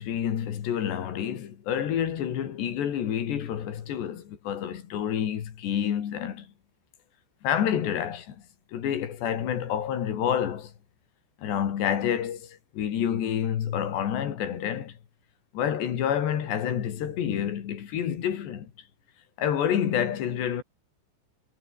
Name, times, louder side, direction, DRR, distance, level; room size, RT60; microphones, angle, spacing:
voice 1, 0.0-6.5 7.4-8.4 8.7-10.7 11.4-15.0 15.5-18.7 19.4-20.6, left 9 dB, 75° left, 4.8 m, -28 dB
omnidirectional pair, 4.9 m